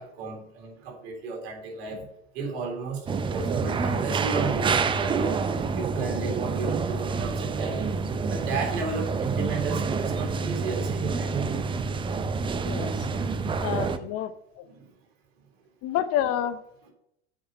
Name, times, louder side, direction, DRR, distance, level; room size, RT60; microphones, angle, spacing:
voice 1, 0.0-2.1 2.3-5.4 5.7-7.9 8.3-11.4 13.4-13.5 14.7-14.8, right 4 dB, 60° right, 1 dB, 3.6 m, -33 dB
sound 1, 3.1-14.0, right 4 dB, 15° right, 0.5 m, -28 dB
voice 2, 13.6-14.7 15.8-16.6, left 11 dB, 40° left, 12 dB, 0.8 m, -29 dB
7.8 x 6.3 x 5.4 m, 0.78 s
hypercardioid pair, 95°, 35 cm